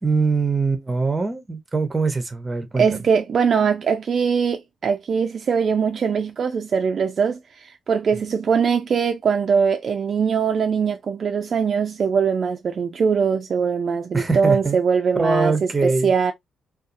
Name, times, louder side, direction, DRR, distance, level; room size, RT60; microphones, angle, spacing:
voice 1, 0.0-2.9 8.1-8.2 14.1-14.8 15.2-16.1, right 4 dB, 20° right, 0.7 m, -22 dB
voice 2, 2.8-15.5 15.8-16.3, right 6 dB, 50° right, 0.4 m, -21 dB
2.6 x 2.3 x 2.5 m
cardioid pair, 90°, 0 cm